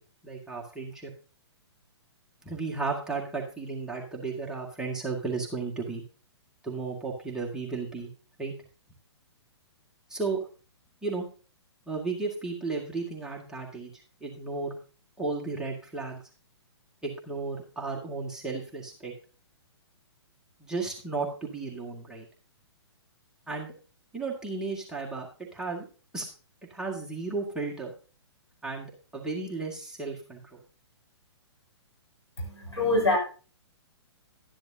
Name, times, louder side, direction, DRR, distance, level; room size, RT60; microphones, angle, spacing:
voice 1, 0.2-1.1 2.4-6.0 6.6-8.1 8.4-8.5 10.1-10.4 11.0-11.3 11.9-13.9 14.2-14.8 15.2-16.2 17.0-19.1 20.6-22.3 23.5-23.7 24.1-25.3 25.5-25.9 26.1-26.3 26.7-27.9 28.6-30.6, right 4 dB, 5° right, -3 dB, 1.8 m, -34 dB
voice 2, 32.4-33.2, left 2 dB, 85° left, -1 dB, 6.1 m, -25 dB
12.0 x 10.5 x 2.8 m, 0.37 s
figure-of-eight pair, 125°, 14 cm